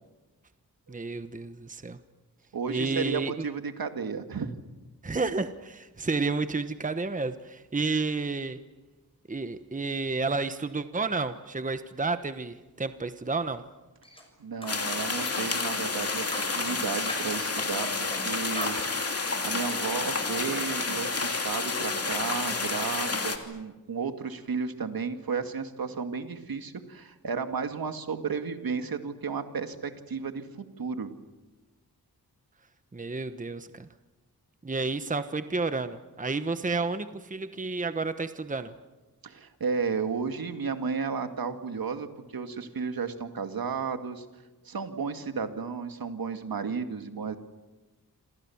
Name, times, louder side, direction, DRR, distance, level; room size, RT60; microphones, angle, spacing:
voice 1, 0.9-2.0 2.7-3.4 5.0-8.6 9.3-13.6 32.9-33.9 34.6-38.7, right 3 dB, 20° right, 10 dB, 1.1 m, -31 dB
voice 2, 2.5-4.5 14.4-18.8 19.4-31.1 39.2-44.3 44.6-47.4, right 5 dB, 70° right, 7 dB, 2.3 m, -33 dB
sound 1, 14.0-14.2 14.6-14.8 15.2-15.5 15.9-16.8 17.1-18.2 18.5-18.8, left 1 dB, 15° left, 6.7 m, -38 dB
sound 2, 14.7-23.4, left 3 dB, 40° left, 2.9 m, -30 dB
28.0 x 27.5 x 7.3 m, 1.2 s
wide cardioid pair, 105°, 37 cm